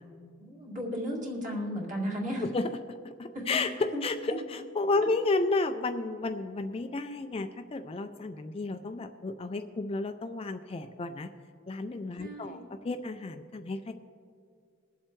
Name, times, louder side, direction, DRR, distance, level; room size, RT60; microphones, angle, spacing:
voice 1, 0.0-2.4 3.3-3.6 3.9-4.0 4.3-4.4 12.2-12.6, equal, 40° right, -3 dB, 2.3 m, -35 dB
voice 2, 3.0-3.7 4.0-11.3 11.7-13.9, left 3 dB, 30° left, 8 dB, 0.4 m, -32 dB
22.0 x 7.5 x 3.2 m, 2.2 s
head